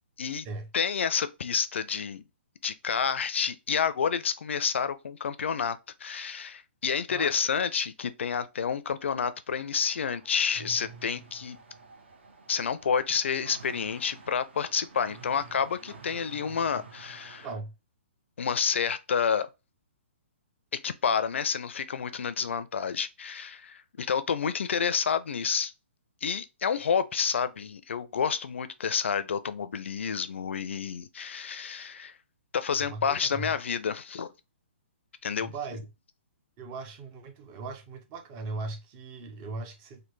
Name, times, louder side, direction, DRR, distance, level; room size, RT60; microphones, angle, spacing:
voice 1, 0.7-2.2 2.6-11.6 12.5-17.5 18.4-19.5 20.8-25.7 26.2-32.1 32.5-34.3 35.2-35.5, left 6 dB, 80° left, 0.4 m, -29 dB
voice 2, 7.1-7.4 17.4-17.7 32.8-33.5 35.4-35.8 36.6-40.0, right 3 dB, 15° right, 0.4 m, -39 dB
sound 1, 9.7-17.5, right 4 dB, 70° right, 0.9 m, -49 dB
3.2 x 2.2 x 3.1 m
hypercardioid pair, 170°, 6 cm